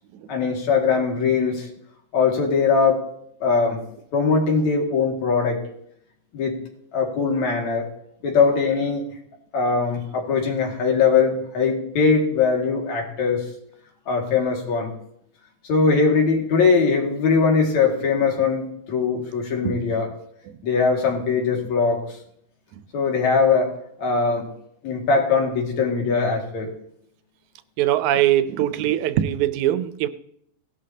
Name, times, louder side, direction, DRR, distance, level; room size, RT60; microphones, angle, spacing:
voice 1, 0.3-1.7 2.1-3.1 3.4-3.8 4.1-5.6 6.3-6.6 6.9-7.9 8.2-9.0 9.5-13.5 14.1-14.9 15.7-20.1 20.6-22.0 22.9-23.7 24.0-24.5 24.8-26.7, left 5 dB, 70° left, 0 dB, 3.5 m, -21 dB
voice 2, 19.6-20.0 20.5-20.6 21.6-21.7 22.7-22.8 27.8-30.1, right 12 dB, 85° right, 13 dB, 2.0 m, -22 dB
18.0 x 11.5 x 2.8 m, 0.70 s
omnidirectional pair, 3.4 m